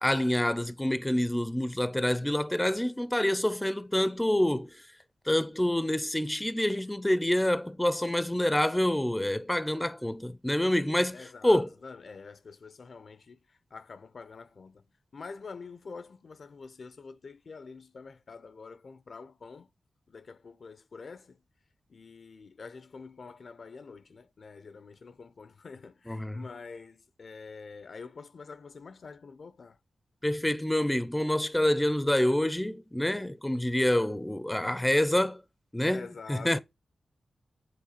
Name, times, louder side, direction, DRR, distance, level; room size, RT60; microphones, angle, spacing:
voice 1, 0.0-4.7 5.3-11.7 26.1-26.4 30.2-35.4 35.7-36.6, left 1 dB, 10° left, 0.7 m, -27 dB
voice 2, 11.1-14.8 15.1-19.7 20.1-21.4 21.9-29.8 35.9-36.6, left 4 dB, 65° left, 0.7 m, -46 dB
8.7 x 3.3 x 6.6 m
cardioid pair, 40°, 0 cm